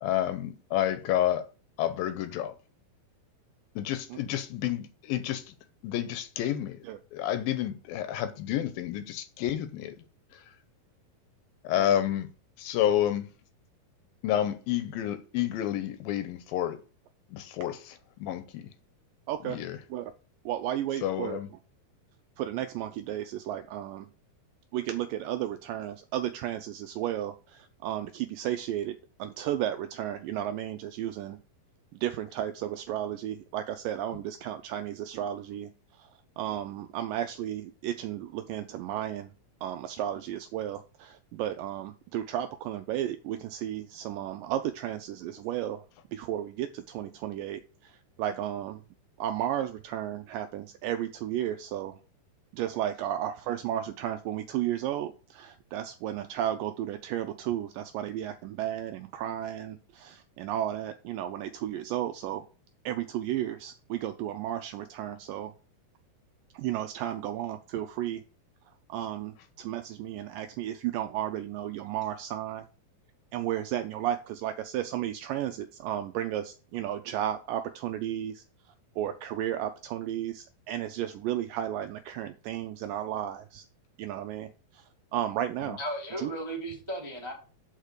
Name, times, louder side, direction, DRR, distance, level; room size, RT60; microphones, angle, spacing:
voice 1, 0.0-1.5 1.8-2.5 3.8-5.5 5.8-6.8 7.1-10.0 10.3-10.6 11.6-12.3 12.6-13.3 14.2-16.8 17.3-18.7 19.4-19.8 21.0-21.5 85.6-85.8, left 11 dB, 80° left, 2.3 m, -30 dB
voice 2, 19.3-19.6 19.9-20.1 20.5-21.4 22.4-24.1 24.7-31.4 31.9-36.1 36.4-39.3 39.6-45.9 46.1-48.8 49.2-52.0 52.5-62.5 62.9-65.5 66.5-68.2 68.9-72.7 73.3-78.4 79.0-83.7 84.0-85.8 86.2-86.3, right 11 dB, 85° right, 1.9 m, -33 dB
voice 3, 85.8-87.3, right 1 dB, 45° right, 0.3 m, -35 dB
6.4 x 5.0 x 6.6 m
omnidirectional pair, 4.4 m